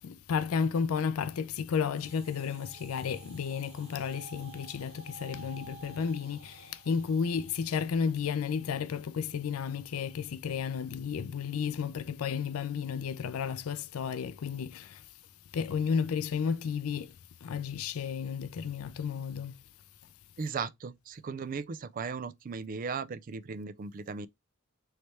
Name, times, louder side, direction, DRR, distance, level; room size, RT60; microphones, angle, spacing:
voice 1, 0.0-15.0 15.5-17.2 17.4-19.6, left 6 dB, 85° left, 0.4 m, -32 dB
sound 1, 2.0-10.3, right 3 dB, 65° right, 2.0 m, -53 dB
voice 2, 20.4-24.3, right 5 dB, 40° right, 0.3 m, -37 dB
3.2 x 3.2 x 4.1 m
head